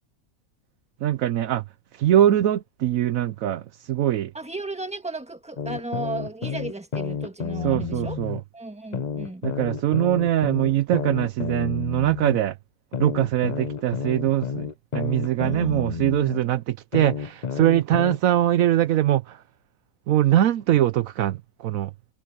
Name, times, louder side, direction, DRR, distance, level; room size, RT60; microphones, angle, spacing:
voice 1, 1.0-1.6 2.0-3.6 3.9-4.3 7.6-8.4 9.4-12.5 13.0-14.7 14.9-19.4 20.1-21.9, right 12 dB, 75° right, 1.0 m, -22 dB
voice 2, 4.3-8.2 8.5-9.4 15.4-15.9, right 2 dB, 5° right, 1.5 m, -35 dB
sound 1, 5.6-8.4 8.9-12.4 12.9-16.4 16.9-18.2, left 6 dB, 35° left, 0.8 m, -30 dB
omnidirectional pair, 1.5 m